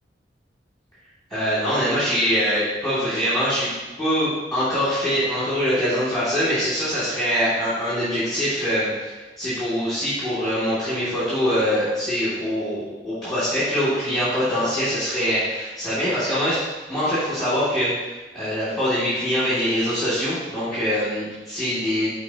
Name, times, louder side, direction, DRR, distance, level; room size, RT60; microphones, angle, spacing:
voice 1, 1.3-3.7 4.0-16.6 16.9-22.1, equal, ahead, -12 dB, 2.8 m, -23 dB
12.5 x 5.1 x 3.1 m, 1.2 s
head